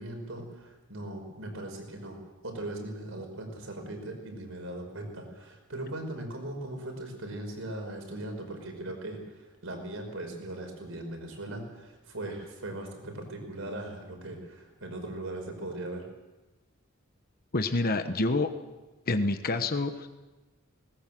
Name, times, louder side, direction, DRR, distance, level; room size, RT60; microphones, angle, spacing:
voice 1, 0.0-2.2 2.4-16.1, right 1 dB, 75° right, 3 dB, 5.4 m, -39 dB
voice 2, 17.5-18.5 19.1-20.1, left 2 dB, 45° left, 8 dB, 1.1 m, -27 dB
20.0 x 18.5 x 7.7 m, 1.1 s
head